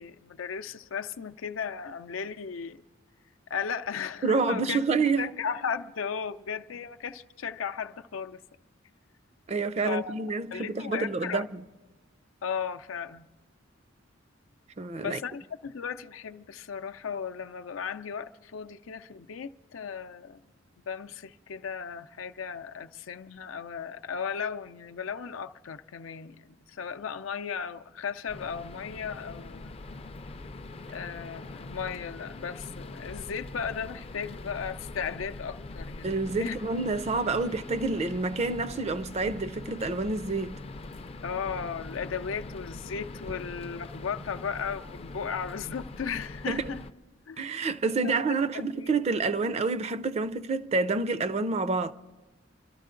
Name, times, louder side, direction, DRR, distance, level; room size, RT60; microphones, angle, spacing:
voice 1, 0.0-2.8 3.5-4.8 5.2-8.4 9.8-10.2 10.5-11.4 12.4-13.3 15.0-20.4 20.9-29.8 30.9-36.1 36.4-36.6 41.2-46.8 47.3-47.4 48.0-48.2 48.5-48.9, left 6 dB, 90° left, 0.5 m, -36 dB
voice 2, 4.2-5.3 9.5-11.6 14.8-15.2 36.0-40.6 46.5-46.7 47.4-51.9, right 3 dB, 35° right, 0.4 m, -28 dB
sound 1, 28.3-46.9, left 2 dB, 30° left, 0.4 m, -42 dB
28.0 x 13.0 x 3.8 m
head